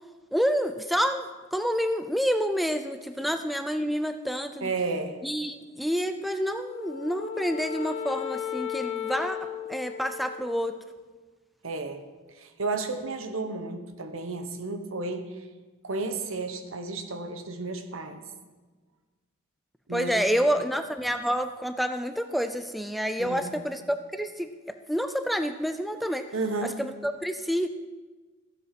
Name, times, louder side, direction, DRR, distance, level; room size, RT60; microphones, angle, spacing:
voice 1, 0.3-4.7 5.2-10.7 19.9-24.5 24.9-26.2 26.8-27.7, equal, ahead, 8 dB, 0.4 m, -28 dB
voice 2, 4.6-5.2 11.6-12.0 12.3-15.4 15.8-18.2 19.9-20.6 23.2-23.7 26.3-26.8, right 3 dB, 65° right, 7 dB, 1.2 m, -33 dB
Wind instrument woodwind instrument, 6.6-11.1, left 9 dB, 70° left, 0.9 m, -35 dB
14.5 x 8.0 x 5.9 m, 1.3 s
head